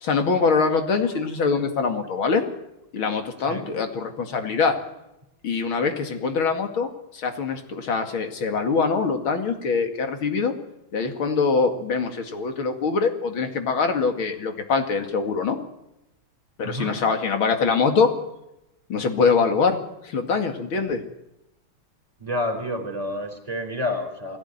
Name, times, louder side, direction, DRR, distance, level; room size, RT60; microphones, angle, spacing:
voice 1, 0.0-2.4 2.9-4.7 5.4-10.5 10.9-15.6 16.6-18.1 18.9-19.8 20.0-21.0, left 5 dB, 75° left, 5 dB, 3.1 m, -23 dB
voice 2, 16.6-17.0 22.2-24.4, left 1 dB, 15° right, 5 dB, 4.2 m, -29 dB
22.0 x 16.5 x 9.4 m, 0.89 s
omnidirectional pair, 2.3 m